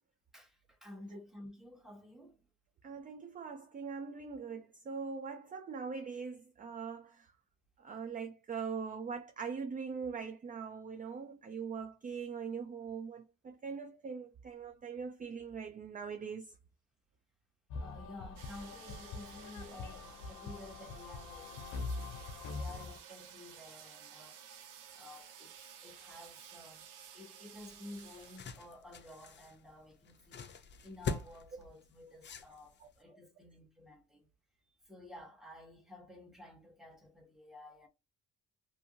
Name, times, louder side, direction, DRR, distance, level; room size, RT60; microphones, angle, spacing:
voice 1, 0.3-2.4 17.8-22.0 22.4-24.4 24.9-25.5 25.8-26.9 27.1-34.3 34.7-37.9, left 1 dB, ahead, 1.2 m, -52 dB
voice 2, 2.8-7.3 7.8-16.5 32.8-32.9, right 5 dB, 30° right, 0.4 m, -42 dB
sound 1, 17.7-23.0, left 3 dB, 85° left, 0.6 m, -43 dB
sound 2, 18.4-28.4, right 8 dB, 85° right, 0.6 m, -54 dB
sound 3, 27.6-33.0, left 5 dB, 35° left, 0.5 m, -44 dB
2.8 x 2.6 x 2.6 m
cardioid pair, 90°, 30 cm